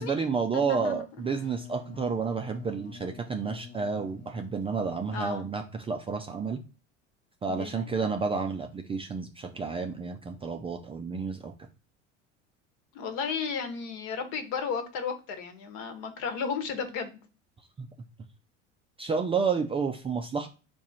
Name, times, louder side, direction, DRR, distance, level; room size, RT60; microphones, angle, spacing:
voice 1, 0.0-6.6 7.4-11.5 17.8-17.9 19.0-20.5, right 5 dB, 15° right, 5 dB, 0.4 m, -30 dB
voice 2, 0.5-1.0 5.1-5.5 7.5-7.8 12.9-17.2, left 6 dB, 55° left, 7 dB, 1.3 m, -34 dB
Wind instrument woodwind instrument, 1.1-5.7, left 6 dB, 20° left, 0.8 m, -49 dB
4.7 x 2.6 x 4.2 m, 0.34 s
hypercardioid pair, 75°, 37 cm